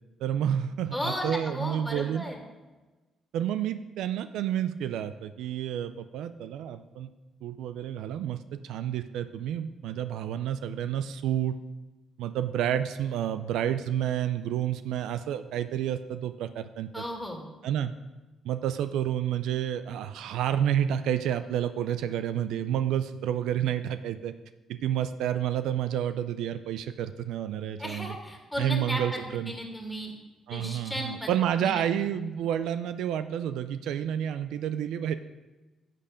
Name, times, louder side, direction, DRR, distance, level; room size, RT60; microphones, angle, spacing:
voice 1, 0.2-2.2 3.3-7.1 7.4-11.6 12.2-17.0 17.6-17.9 18.4-24.3 24.7-28.2 28.6-29.5 30.5-35.2, right 10 dB, 85° right, 11 dB, 0.4 m, -30 dB
voice 2, 0.9-2.4 16.9-17.4 27.8-30.1 30.5-31.3 31.6-31.8, equal, 5° left, 1 dB, 2.1 m, -35 dB
11.0 x 6.7 x 5.1 m, 1.2 s
cardioid pair, 90°, 0 cm